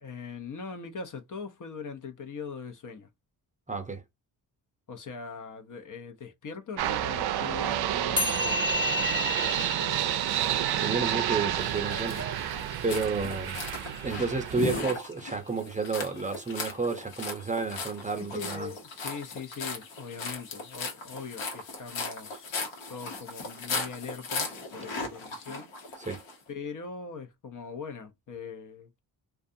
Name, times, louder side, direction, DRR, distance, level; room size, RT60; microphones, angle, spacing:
voice 1, 0.0-3.1 4.9-8.7 9.8-10.4 13.3-13.5 18.2-22.5 22.9-25.7 26.5-29.0, left 5 dB, 45° left, 0.7 m, -41 dB
voice 2, 3.7-4.0 10.8-12.2 12.8-13.6 14.0-18.7 26.0-26.2, right 4 dB, 15° right, 0.7 m, -31 dB
sound 1, 6.8-14.8, right 12 dB, 60° right, 0.5 m, -30 dB
sound 2, 8.2-14.7, left 3 dB, 25° left, 1.1 m, -34 dB
sound 3, 11.6-26.4, left 3 dB, 85° left, 1.1 m, -37 dB
2.4 x 2.3 x 2.6 m
supercardioid pair, 55°, 44 cm